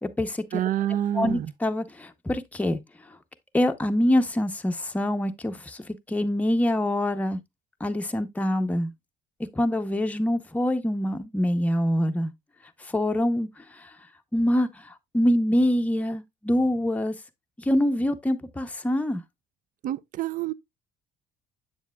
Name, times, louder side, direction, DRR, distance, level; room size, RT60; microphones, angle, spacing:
voice 1, 0.0-0.6 1.1-2.8 3.5-7.4 7.8-8.9 9.5-12.3 12.8-13.9 14.3-17.1 17.6-19.2, left 1 dB, 10° left, 0.7 m, -25 dB
voice 2, 0.5-1.5 19.8-20.5, right 12 dB, 55° right, 0.5 m, -27 dB
7.3 x 7.2 x 2.2 m
cardioid pair, 110°, 17 cm